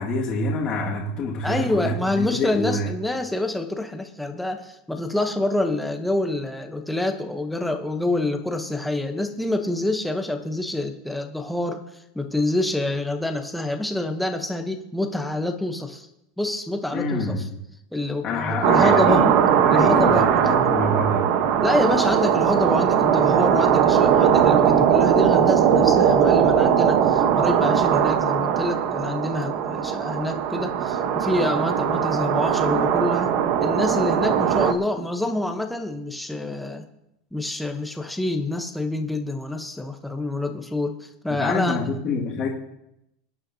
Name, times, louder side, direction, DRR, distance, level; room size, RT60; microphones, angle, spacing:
voice 1, 0.0-2.9 16.9-17.5 18.2-19.3 19.6-21.3 41.3-42.5, left 2 dB, 30° left, -4 dB, 1.9 m, -26 dB
voice 2, 1.4-11.8 12.1-16.1 16.4-17.4 17.9-19.2 19.7-20.5 21.6-33.3 33.6-36.9 37.3-41.8, left 2 dB, ahead, 4 dB, 0.8 m, -27 dB
sound 1, 18.6-34.7, right 8 dB, 45° right, 1.0 m, -19 dB
23.0 x 9.6 x 2.7 m, 0.85 s
supercardioid pair, 170°, 2 cm